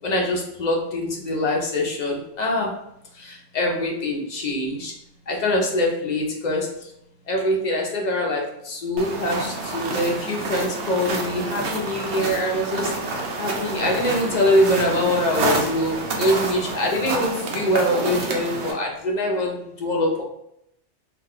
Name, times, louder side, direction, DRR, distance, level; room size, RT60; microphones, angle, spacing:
voice 1, 0.0-2.8 3.1-4.9 5.3-6.9 7.3-20.2, left 1 dB, 45° left, -1 dB, 0.6 m, -24 dB
sound 1, 9.0-18.7, right 3 dB, 75° right, 0.9 m, -28 dB
2.4 x 2.3 x 3.5 m, 0.77 s
omnidirectional pair, 1.2 m